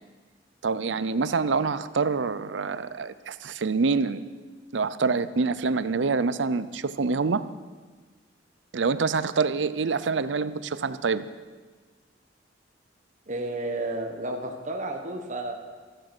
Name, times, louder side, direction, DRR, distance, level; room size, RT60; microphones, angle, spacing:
voice 1, 0.6-4.2 4.7-7.4 8.7-11.3, right 4 dB, 75° right, 15 dB, 0.6 m, -26 dB
voice 2, 13.3-15.5, right 2 dB, 40° right, 3 dB, 1.2 m, -32 dB
13.5 x 12.0 x 6.1 m, 1.4 s
head